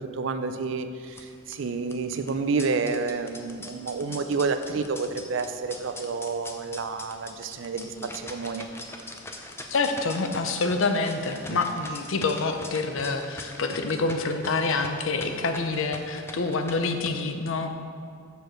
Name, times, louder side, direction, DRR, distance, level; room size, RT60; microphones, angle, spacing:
voice 1, 0.0-8.7 11.5-11.6, right 4 dB, 65° right, 9 dB, 0.4 m, -29 dB
sound 1, 1.0-17.1, left 2 dB, 10° left, 0.4 m, -43 dB
voice 2, 9.7-17.9, left 3 dB, 70° left, 6 dB, 0.6 m, -27 dB
7.0 x 4.5 x 6.3 m, 2.3 s
head